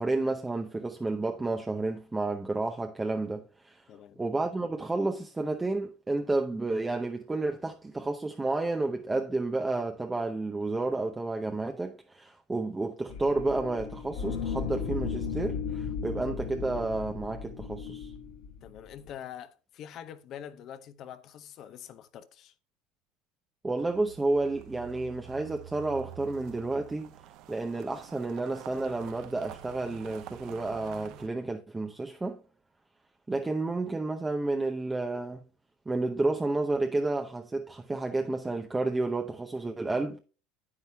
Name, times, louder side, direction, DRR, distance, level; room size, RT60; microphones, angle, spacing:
voice 1, 0.0-3.8 4.2-18.1 23.6-27.1 27.5-32.4 33.3-35.4 35.9-40.2, right 2 dB, 10° right, 0.7 m, -31 dB
voice 2, 3.9-4.2 18.6-22.5, left 10 dB, 40° left, 0.8 m, -45 dB
sound 1, 13.1-19.1, left 6 dB, 75° left, 1.8 m, -35 dB
sound 2, 23.8-31.3, right 11 dB, 50° right, 0.8 m, -48 dB
9.6 x 9.1 x 2.2 m
cardioid pair, 150°, 0 cm